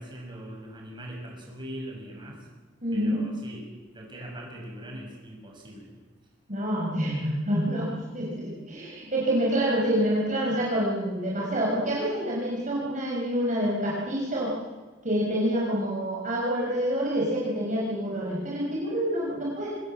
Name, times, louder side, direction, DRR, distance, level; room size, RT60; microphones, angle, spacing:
voice 1, 0.0-2.5 2.9-3.7 3.9-6.0, right 1 dB, 25° right, -1 dB, 6.6 m, -41 dB
voice 2, 2.8-3.3 6.5-14.5 15.0-19.7, equal, 40° right, -5 dB, 5.1 m, -27 dB
25.0 x 19.5 x 7.6 m, 1.3 s
head